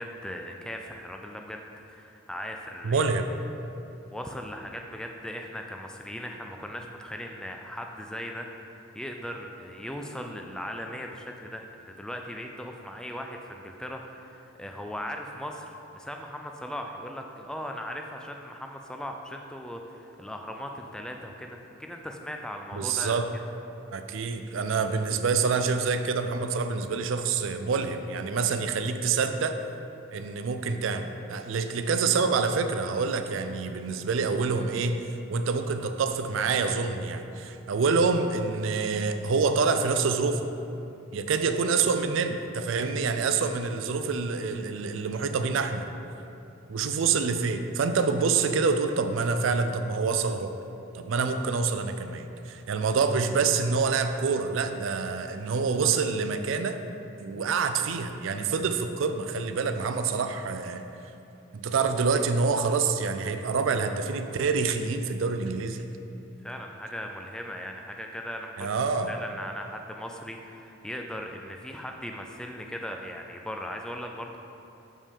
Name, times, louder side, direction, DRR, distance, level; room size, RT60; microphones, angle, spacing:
voice 1, 0.0-1.6 1.9-3.1 4.1-23.1 66.4-68.7 69.1-74.4, equal, 5° left, 2 dB, 0.3 m, -38 dB
voice 2, 2.8-3.3 22.7-23.3 23.9-29.6 30.1-35.0 35.3-40.5 41.1-45.9 46.7-50.5 50.9-56.8 57.2-60.8 61.5-65.9 68.6-69.1, right 5 dB, 75° right, 8 dB, 0.4 m, -27 dB
6.5 x 5.2 x 3.7 m, 2.8 s
head